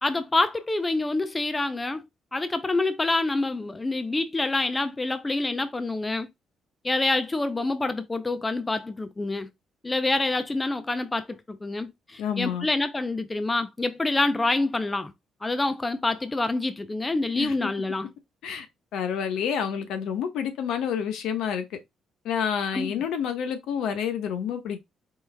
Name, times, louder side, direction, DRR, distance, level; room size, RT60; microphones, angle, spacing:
voice 1, 0.0-2.0 2.3-6.3 6.8-9.5 9.8-15.1 15.4-18.1 22.7-23.0, left 2 dB, 15° left, 0.4 m, -27 dB
voice 2, 12.2-12.7 17.3-17.7 18.4-18.7 18.9-21.8 22.2-24.8, left 8 dB, 75° left, 1.0 m, -29 dB
4.6 x 3.2 x 3.3 m
cardioid pair, 160°, 0 cm